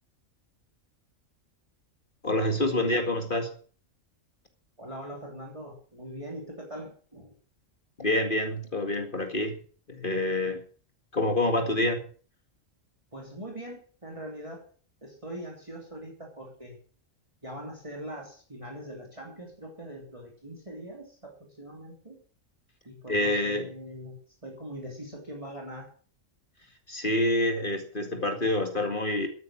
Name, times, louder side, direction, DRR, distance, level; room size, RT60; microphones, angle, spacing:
voice 1, 2.2-3.5 8.0-9.6 9.9-10.6 11.1-12.0 23.1-23.7 26.9-29.3, left 1 dB, 40° left, 5 dB, 2.3 m, -27 dB
voice 2, 4.8-7.3 13.1-14.7 15.0-16.8 17.4-22.2 22.8-25.9, equal, 25° right, 0 dB, 3.1 m, -42 dB
13.5 x 9.5 x 7.4 m, 0.42 s
omnidirectional pair, 1.3 m